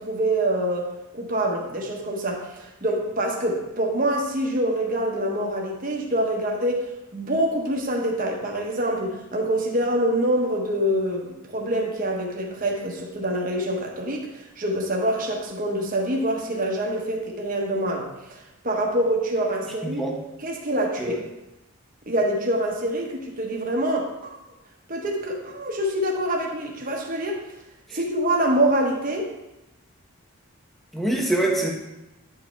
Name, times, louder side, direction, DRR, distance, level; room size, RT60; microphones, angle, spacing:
voice 1, 0.0-6.9 7.1-18.4 18.6-20.0 20.4-21.2 22.1-24.4 24.9-27.4 27.9-29.3, right 1 dB, 40° right, 0 dB, 1.1 m, -25 dB
voice 2, 19.8-20.1 21.0-21.2 27.9-28.0 30.9-31.7, right 1 dB, ahead, -1 dB, 0.8 m, -24 dB
10.0 x 5.3 x 3.4 m, 0.95 s
head